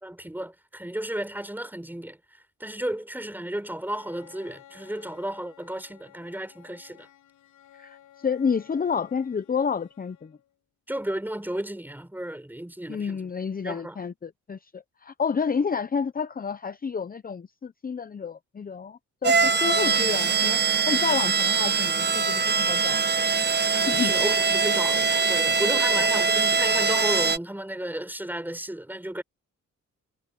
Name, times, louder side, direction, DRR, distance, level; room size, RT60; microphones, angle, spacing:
voice 1, 0.0-2.2 2.6-7.1 10.9-13.3 13.6-14.0 23.8-29.2, right 1 dB, 5° right, 4.2 m, -33 dB
Bowed string instrument, 3.8-10.6, left 11 dB, 85° left, 7.0 m, -54 dB
voice 2, 8.2-10.3 12.9-20.6 20.9-23.0 23.9-24.1 26.0-26.1, left 6 dB, 30° left, 0.8 m, -29 dB
sound 1, 19.2-27.4, right 5 dB, 35° right, 1.1 m, -23 dB
cardioid pair, 85°, 30 cm